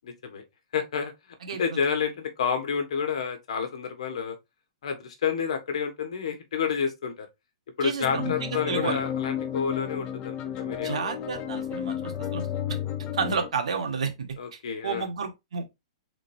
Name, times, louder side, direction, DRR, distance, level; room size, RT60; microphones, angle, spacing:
voice 1, 0.0-0.4 0.7-1.1 1.5-4.4 4.8-7.3 7.8-11.0 14.4-15.1, left 6 dB, 70° left, 1.4 m, -29 dB
voice 2, 1.4-1.8 7.8-9.0 10.8-12.5 13.1-15.6, right 5 dB, 80° right, 1.4 m, -31 dB
sound 1, 8.0-13.5, left 9 dB, 25° left, 0.7 m, -32 dB
5.2 x 3.9 x 2.6 m
hypercardioid pair, 160°, 3 cm